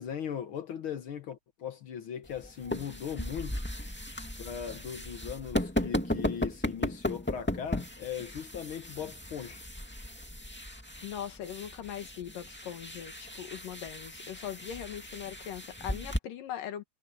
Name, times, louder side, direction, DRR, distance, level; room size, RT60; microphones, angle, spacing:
voice 1, 0.0-3.6 4.4-9.7, left 8 dB, 65° left, 1.3 m, -39 dB
sound 1, 2.2-16.2, left 1 dB, 5° left, 1.3 m, -36 dB
voice 2, 11.0-16.8, left 10 dB, 85° left, 3.4 m, -40 dB
omnidirectional pair, 3.8 m